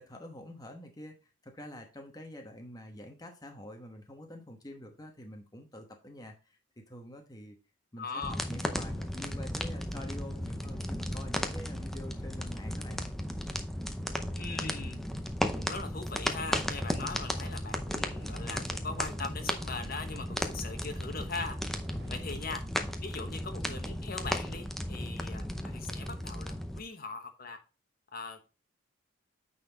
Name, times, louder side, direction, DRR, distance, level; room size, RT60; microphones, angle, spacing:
voice 1, 0.0-7.6 7.9-13.0 22.2-22.4, left 1 dB, 20° left, 3 dB, 1.1 m, -47 dB
voice 2, 8.0-8.4 14.3-15.0 15.6-21.6 22.1-22.6 23.0-27.6 28.1-28.6, left 4 dB, 45° left, 6 dB, 1.1 m, -40 dB
sound 1, 8.2-26.8, equal, ahead, 0.6 m, -35 dB
sound 2, 17.9-22.3, right 2 dB, 50° right, 1.4 m, -54 dB
9.1 x 4.2 x 4.0 m, 0.31 s
head